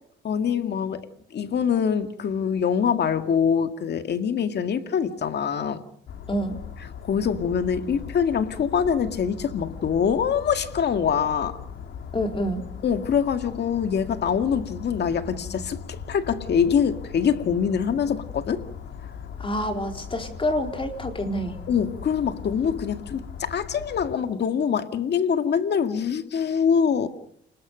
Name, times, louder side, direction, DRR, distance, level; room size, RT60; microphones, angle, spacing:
voice 1, 0.2-1.1 1.3-5.8 7.0-11.6 12.8-18.7 21.7-27.1, left 7 dB, 60° left, 2.1 m, -24 dB
sound 1, 6.1-24.2, left 7 dB, 75° left, 3.5 m, -39 dB
voice 2, 12.1-12.6 19.4-21.6, equal, 25° left, 4.1 m, -27 dB
29.5 x 21.0 x 5.3 m
cardioid pair, 90°, 20 cm